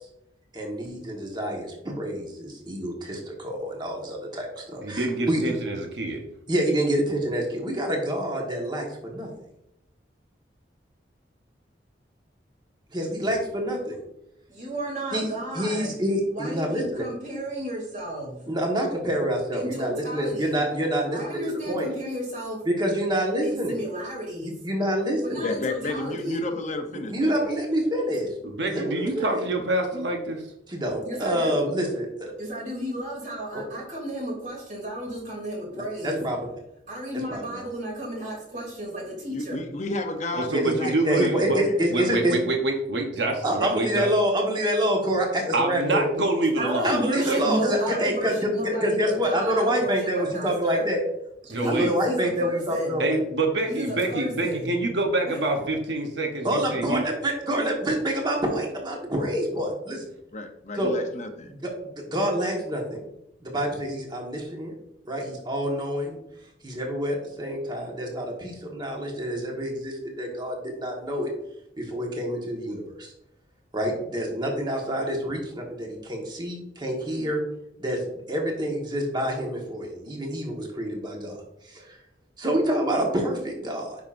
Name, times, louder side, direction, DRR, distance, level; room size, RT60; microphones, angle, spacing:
voice 1, 0.5-5.4 6.5-9.3 12.9-14.0 15.1-15.3 15.5-17.0 18.5-21.4 21.7-21.9 22.6-23.7 24.6-25.4 27.1-28.3 28.7-29.4 30.7-32.3 33.5-33.7 36.0-36.4 37.3-37.6 40.5-42.4 43.4-46.1 46.8-51.0 51.6-53.2 56.4-60.0 60.8-61.0 61.4-63.0 63.4-64.7 65.0-66.2 66.6-71.3 71.8-73.1 73.7-77.4 77.8-81.3 81.6-82.0 82.4-84.0, equal, 25° right, 0 dB, 1.4 m, -27 dB
voice 2, 4.8-6.2 28.4-30.4 40.3-41.6 41.9-44.1 45.5-47.4 51.5-51.9 53.0-57.0, right 2 dB, 70° right, 3 dB, 1.0 m, -26 dB
voice 3, 14.5-16.0 16.3-18.4 19.5-20.6 21.1-22.7 23.4-24.5 25.2-26.4 31.0-31.7 32.4-36.2 36.9-39.7 46.6-50.9 51.5-53.0 53.7-54.7 55.3-55.4, right 1 dB, 45° right, -1 dB, 2.8 m, -33 dB
voice 4, 25.4-27.3 39.3-42.1 60.3-61.5, left 2 dB, 40° left, 5 dB, 0.7 m, -32 dB
9.3 x 5.7 x 2.6 m, 0.81 s
head